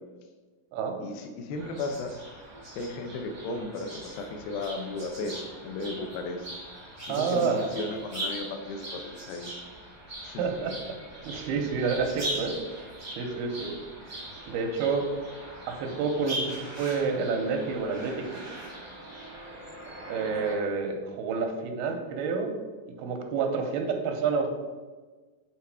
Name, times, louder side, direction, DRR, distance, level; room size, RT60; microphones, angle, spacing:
voice 1, 1.0-2.1 2.8-6.5 7.1-9.5 10.2-10.4, left 2 dB, 80° left, 5 dB, 2.5 m, -35 dB
sound 1, 1.6-20.5, right 1 dB, 40° right, 0.5 m, -40 dB
voice 2, 7.1-7.7 10.4-11.0 11.2-12.6 13.2-13.7 14.0-15.1 15.7-18.4 20.1-22.5 23.0-24.5, right 5 dB, 85° right, 4 dB, 2.7 m, -29 dB
8.2 x 3.8 x 4.7 m, 1.3 s
omnidirectional pair, 4.4 m